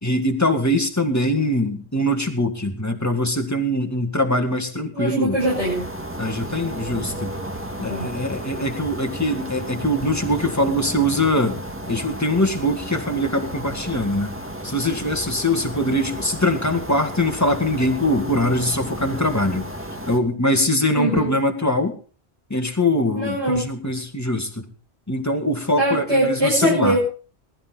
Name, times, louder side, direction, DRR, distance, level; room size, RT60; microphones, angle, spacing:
voice 1, 0.0-5.4 6.2-7.4 7.8-11.6 11.9-14.3 14.6-19.7 20.1-21.9 22.5-24.7 25.1-27.0, left 1 dB, 15° left, 5 dB, 2.0 m, -22 dB
voice 2, 4.9-5.9 7.9-8.1 20.9-21.3 23.1-23.7 25.8-27.0, right 1 dB, 85° right, -5 dB, 6.2 m, -21 dB
sound 1, 5.4-20.2, right 1 dB, 10° right, 1.9 m, -33 dB
21.0 x 12.5 x 4.0 m, 0.39 s
omnidirectional pair, 1.1 m